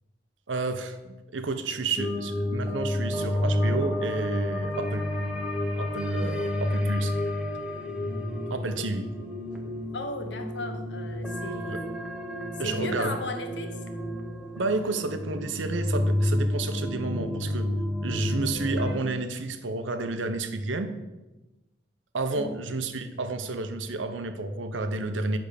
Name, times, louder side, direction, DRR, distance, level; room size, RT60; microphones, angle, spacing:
voice 1, 0.5-5.1 5.8-7.2 8.5-9.1 11.5-11.8 12.6-13.2 14.5-17.7 18.0-20.9 22.1-25.4, right 3 dB, 90° right, 9 dB, 0.8 m, -31 dB
sound 1, 2.0-18.9, left 1 dB, 5° right, 0.9 m, -30 dB
voice 2, 9.9-11.9 12.6-13.8 22.4-22.6, left 2 dB, 70° left, 5 dB, 1.1 m, -36 dB
10.0 x 3.6 x 6.7 m, 1.1 s
head